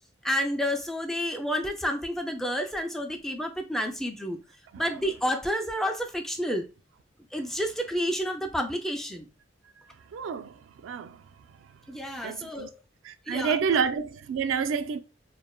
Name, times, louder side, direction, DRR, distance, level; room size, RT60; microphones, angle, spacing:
voice 1, 0.2-4.4 4.8-6.7 7.3-9.3 11.9-12.8 13.3-13.9, equal, ahead, 0.3 m, -30 dB
voice 2, 10.1-10.5 10.8-11.1 12.2-12.7 13.3-15.0, right 6 dB, 85° right, 0.3 m, -28 dB
3.1 x 2.1 x 2.2 m
head